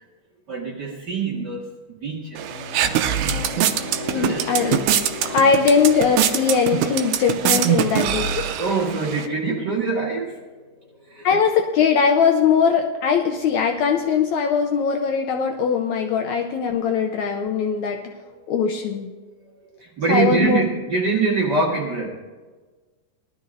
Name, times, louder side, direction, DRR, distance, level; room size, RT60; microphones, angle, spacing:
voice 1, 0.5-1.7 2.0-3.2 4.1-4.7 5.1-5.4 8.6-10.4 11.1-11.3 18.2-18.7 19.8-22.1, right 4 dB, 35° right, -4 dB, 2.1 m, -25 dB
sound 1, 2.1-11.2, left 5 dB, 45° left, 4.5 m, -39 dB
sound 2, 2.4-9.3, right 9 dB, 75° right, 2.0 m, -23 dB
voice 2, 4.1-4.8 5.3-8.5 11.2-18.0 18.5-19.1 20.1-20.6, left 6 dB, 75° left, 4 dB, 1.8 m, -20 dB
20.0 x 12.5 x 2.7 m, 1.3 s
omnidirectional pair, 3.9 m